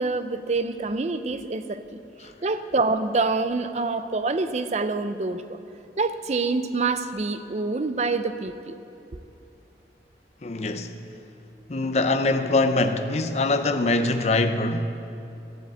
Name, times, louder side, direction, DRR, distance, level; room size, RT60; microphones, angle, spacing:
voice 1, 0.0-2.0 2.4-5.6 6.0-8.8, right 3 dB, 40° right, 0.5 m, -26 dB
voice 2, 10.4-10.9 11.7-15.0, left 2 dB, 40° left, 0.6 m, -23 dB
13.0 x 7.7 x 7.7 m
head